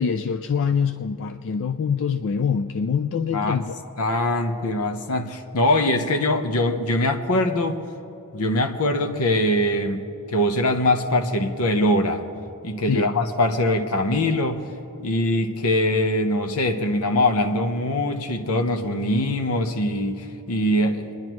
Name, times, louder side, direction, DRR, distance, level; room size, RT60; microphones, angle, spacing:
voice 1, 0.0-3.8 12.9-13.1, left 6 dB, 60° left, 8 dB, 0.4 m, -24 dB
voice 2, 4.0-7.8 8.3-12.2 12.6-14.6 15.0-21.1, left 1 dB, 80° left, 6 dB, 0.9 m, -22 dB
27.0 x 10.5 x 3.1 m, 2.8 s
head